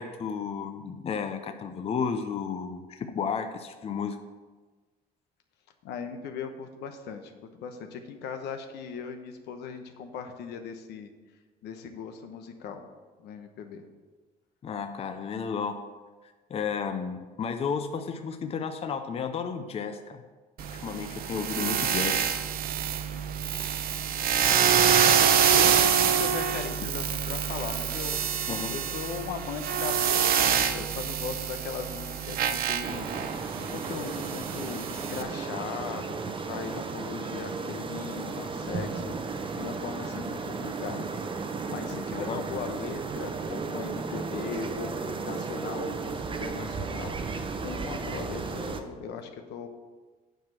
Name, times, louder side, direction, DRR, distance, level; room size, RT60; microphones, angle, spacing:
voice 1, 0.0-4.2 14.6-15.8 16.5-20.2 20.8-22.3 28.5-28.8 42.3-42.4, left 6 dB, 35° left, 7 dB, 0.6 m, -32 dB
voice 2, 5.8-11.1 11.6-12.8 13.2-13.8 24.1-24.2 25.5-28.2 28.7-33.1 33.6-41.0 41.6-44.9 45.2-47.2 47.6-49.7, left 6 dB, 80° left, 6 dB, 1.0 m, -38 dB
sound 1, 20.6-35.2, right 8 dB, 60° right, 0.8 m, -26 dB
sound 2, 32.8-48.8, right 4 dB, 30° right, 0.8 m, -34 dB
9.0 x 4.9 x 6.1 m, 1.3 s
cardioid pair, 110°, 17 cm